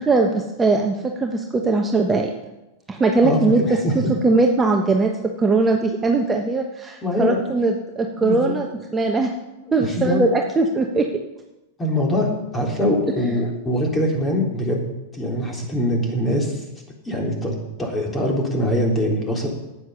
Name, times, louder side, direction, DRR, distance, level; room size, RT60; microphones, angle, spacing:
voice 1, 0.1-2.3 2.9-3.6 4.1-5.1 5.4-8.7 8.9-9.3 9.7-11.1 13.2-13.3, right 3 dB, 15° right, 2 dB, 1.1 m, -20 dB
voice 2, 3.2-4.1 7.0-7.4 8.2-8.6 9.7-10.2 11.8-12.3 12.5-16.6 17.1-19.5, left 1 dB, 15° left, 0 dB, 3.7 m, -23 dB
9.4 x 9.0 x 6.8 m, 0.98 s
hypercardioid pair, 100°, 0 cm